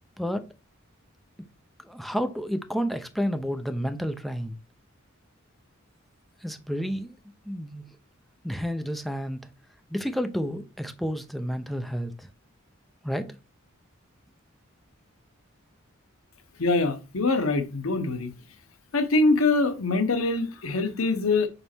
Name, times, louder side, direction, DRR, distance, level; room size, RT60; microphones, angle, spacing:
voice 1, 1.8-4.6 6.4-7.2 7.4-7.9 8.4-9.4 9.9-12.3 13.0-13.3, equal, ahead, 0.6 m, -30 dB
voice 2, 16.6-18.3 18.9-21.5, left 3 dB, 85° left, 1.0 m, -24 dB
5.3 x 4.1 x 4.5 m
head